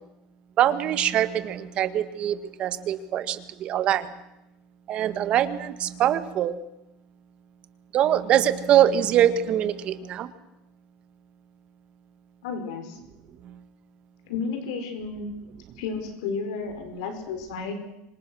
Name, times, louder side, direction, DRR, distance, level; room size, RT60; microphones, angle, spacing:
voice 1, 0.6-4.1 4.9-6.6 7.9-10.3 13.5-13.6, right 11 dB, 40° right, 12 dB, 1.7 m, -23 dB
voice 2, 12.4-13.0 14.2-15.3 15.8-17.7, left 5 dB, 85° left, 6 dB, 5.1 m, -32 dB
26.5 x 25.5 x 6.4 m, 0.91 s
cardioid pair, 145°, 3 cm